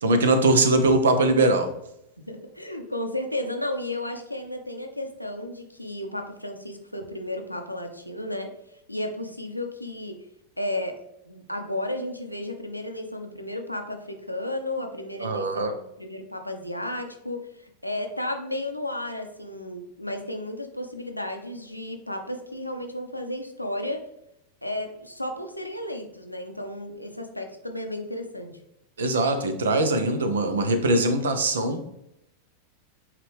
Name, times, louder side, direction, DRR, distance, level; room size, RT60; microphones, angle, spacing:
voice 1, 0.0-1.7 15.2-15.7 29.0-31.8, right 2 dB, 65° right, 8 dB, 0.7 m, -21 dB
voice 2, 2.3-8.5 8.9-10.2 10.6-11.0 11.3-24.1 24.6-28.6, left 1 dB, 90° left, 4 dB, 0.7 m, -33 dB
8.4 x 3.3 x 3.4 m, 0.82 s
figure-of-eight pair, 90°, 0 cm